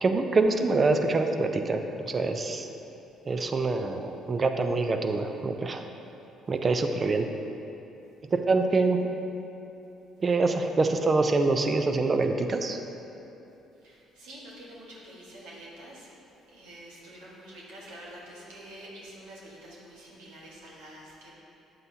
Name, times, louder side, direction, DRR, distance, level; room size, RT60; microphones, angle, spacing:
voice 1, 0.0-2.7 3.3-5.9 6.5-7.3 8.3-9.1 10.2-12.8, right 3 dB, 40° right, 6 dB, 0.6 m, -25 dB
voice 2, 13.8-16.1 16.5-21.3, right 1 dB, 80° right, -5 dB, 1.6 m, -47 dB
9.4 x 7.8 x 2.8 m, 2.9 s
hypercardioid pair, 55°, 0 cm